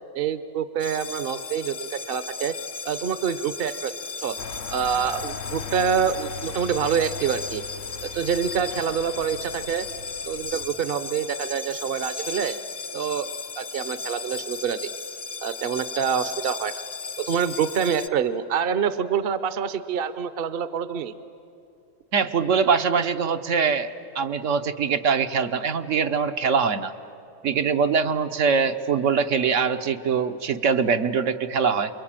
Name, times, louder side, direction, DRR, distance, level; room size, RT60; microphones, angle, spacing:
voice 1, 0.1-2.5 2.8-3.9 4.2-4.4 4.7-7.6 8.0-9.9 10.2-12.6 12.9-13.3 13.6-14.9 15.4-16.8 17.2-21.1, right 7 dB, 50° right, 13 dB, 0.9 m, -26 dB
sound 1, 0.8-18.1, left 5 dB, 45° left, 0.8 m, -36 dB
sound 2, 4.4-10.7, left 6 dB, 75° left, 1.2 m, -39 dB
voice 2, 22.1-26.9 27.4-32.0, right 6 dB, 70° right, 7 dB, 1.2 m, -23 dB
28.5 x 22.5 x 8.9 m, 2.6 s
omnidirectional pair, 1.3 m